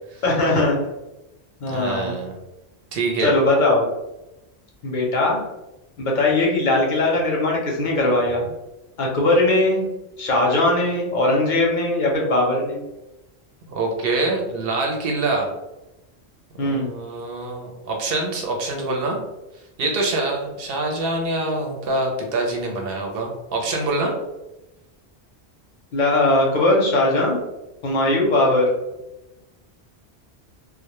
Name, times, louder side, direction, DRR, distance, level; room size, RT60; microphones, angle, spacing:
voice 1, 0.2-0.8 1.6-2.2 3.2-3.8 4.8-5.4 6.0-8.5 9.0-9.9 10.2-12.8 16.6-16.9 25.9-27.4 27.8-28.7, left 2 dB, 55° left, -2 dB, 0.6 m, -19 dB
voice 2, 1.7-2.3 2.9-3.3 13.7-15.5 16.6-19.2 19.8-24.1, right 2 dB, 65° right, 1 dB, 0.7 m, -25 dB
2.1 x 2.1 x 2.9 m, 0.98 s
omnidirectional pair, 1.1 m